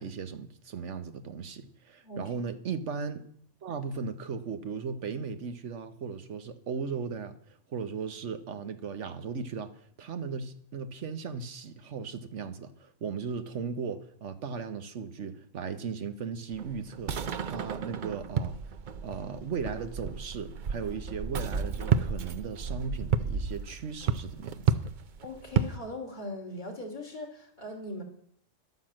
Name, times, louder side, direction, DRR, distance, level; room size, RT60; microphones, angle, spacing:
voice 1, 0.0-3.2 3.6-18.6 19.0-24.7, right 5 dB, 75° right, 1.3 m, -37 dB
voice 2, 2.0-2.3 25.2-28.0, left 1 dB, 40° left, 3.1 m, -40 dB
sound 1, 16.5-25.8, right 7 dB, 50° right, 0.7 m, -31 dB
11.0 x 9.4 x 7.5 m
omnidirectional pair, 1.2 m